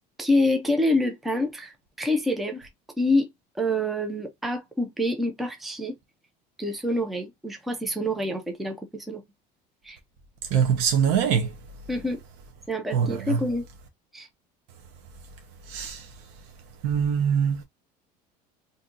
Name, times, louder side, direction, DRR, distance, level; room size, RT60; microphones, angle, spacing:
voice 1, 0.2-2.7 3.0-3.3 3.6-5.9 6.6-9.2 9.8-10.0 11.9-12.2 12.7-13.7 14.1-14.3, left 1 dB, ahead, 0.4 m, -26 dB
voice 2, 10.5-11.5 12.9-13.4 15.7-16.1 16.8-17.6, right 7 dB, 60° right, 0.7 m, -23 dB
2.6 x 2.5 x 3.8 m
cardioid pair, 180°, 20 cm